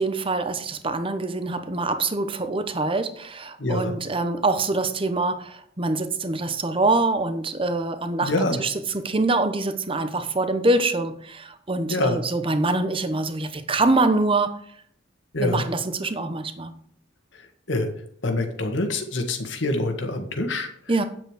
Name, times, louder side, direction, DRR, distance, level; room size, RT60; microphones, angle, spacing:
voice 1, 0.0-8.3 8.6-14.6 15.4-16.7 20.9-21.0, right 2 dB, 30° right, 10 dB, 0.9 m, -24 dB
voice 2, 3.6-3.9 8.2-8.6 11.9-12.2 15.3-15.7 17.3-17.9 18.2-20.7, left 2 dB, 80° left, 4 dB, 1.7 m, -25 dB
9.2 x 7.6 x 5.0 m, 0.62 s
head